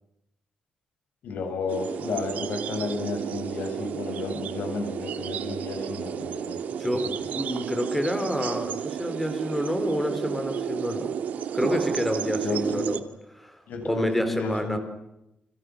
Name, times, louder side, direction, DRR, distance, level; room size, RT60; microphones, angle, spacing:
voice 1, 1.2-6.6 7.0-7.3 12.4-12.9 13.7-14.8, left 3 dB, 80° left, 5 dB, 7.8 m, -32 dB
sound 1, 1.7-13.0, right 8 dB, 75° right, 2.1 m, -32 dB
voice 2, 6.7-7.1 7.3-11.2 11.5-13.0 13.3-14.8, equal, 5° left, 7 dB, 3.9 m, -28 dB
30.0 x 26.5 x 6.4 m, 0.86 s
cardioid pair, 120°, 3 cm